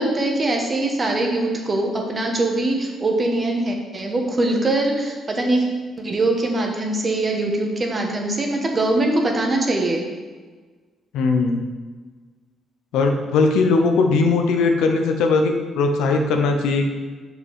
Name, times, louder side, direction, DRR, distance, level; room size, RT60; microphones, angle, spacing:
voice 1, 0.0-5.7 6.0-10.1, right 2 dB, 35° right, 2 dB, 1.3 m, -22 dB
voice 2, 11.1-11.6 12.9-16.9, left 3 dB, 90° left, 4 dB, 0.8 m, -19 dB
6.2 x 5.2 x 4.8 m, 1.4 s
cardioid pair, 90°, 0 cm